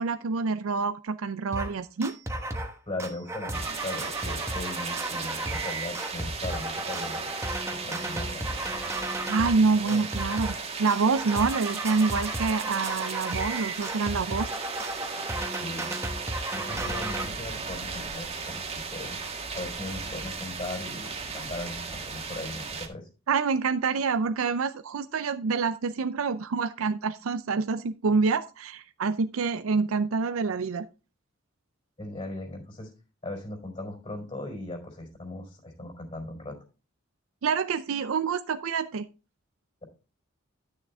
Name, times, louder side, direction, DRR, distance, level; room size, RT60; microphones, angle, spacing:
voice 1, 0.0-2.2 9.3-14.5 23.3-30.9 37.4-39.0, right 4 dB, 85° right, 11 dB, 0.5 m, -27 dB
sound 1, 1.5-1.7 2.0-2.7 3.0-9.6 9.9-10.6 10.9-17.3, right 1 dB, 15° right, 1.1 m, -34 dB
voice 2, 2.9-7.3 7.8-8.5 9.7-10.0 15.6-15.9 16.5-19.2 19.5-23.1 32.0-32.9 33.2-36.5, left 2 dB, 30° left, 1 dB, 4.1 m, -38 dB
sound 2, 3.5-22.9, right 4 dB, 30° right, 1.6 m, -36 dB
11.5 x 6.7 x 3.5 m, 0.33 s
head